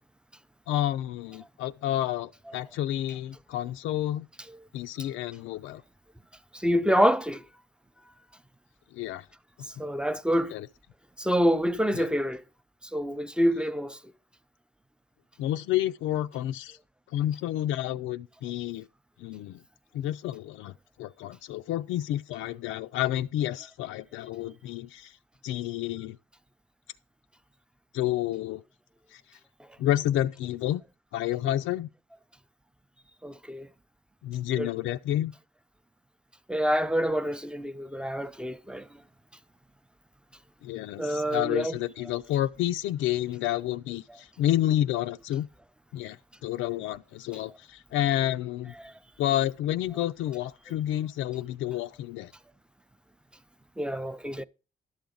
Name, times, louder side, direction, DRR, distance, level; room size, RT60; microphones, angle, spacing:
voice 1, 0.7-4.3 4.7-5.8 8.9-9.3 10.5-10.7 11.9-12.1 15.4-16.8 17.1-18.9 19.2-19.6 19.9-20.7 21.0-25.2 25.4-26.2 27.9-28.6 29.1-29.2 29.8-30.8 31.1-31.9 34.2-35.3 40.6-45.5 45.9-48.7 49.2-52.3, left 13 dB, 90° left, 0.4 m, -30 dB
voice 2, 6.5-7.4 9.8-10.5 11.2-12.4 12.9-14.0 33.2-33.7 34.6-34.7 36.5-38.9 41.0-41.8 48.8-48.9 53.8-54.4, equal, 5° right, 0.5 m, -26 dB
11.5 x 7.1 x 3.8 m
cardioid pair, 90°, 20 cm